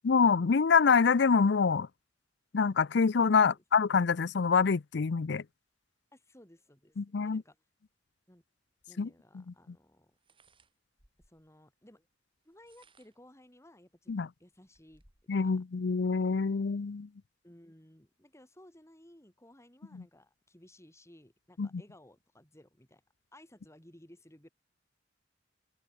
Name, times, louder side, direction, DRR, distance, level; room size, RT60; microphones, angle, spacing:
voice 1, 0.0-1.9 2.5-5.4 7.0-7.4 9.0-9.1 14.1-14.3 15.3-17.1 19.9-20.0 21.6-21.7, left 5 dB, 65° left, 0.5 m, -26 dB
voice 2, 6.1-7.6 8.3-8.4 8.9-10.2 11.3-12.1 12.4-15.0 15.4-15.6 17.4-23.0 23.3-24.5, left 1 dB, 15° left, 4.0 m, -58 dB
sound 1, 8.8-8.9 10.1-11.5 12.4-13.3 13.9-14.0 14.3-15.4, right 3 dB, 30° right, 6.2 m, -66 dB
open air
head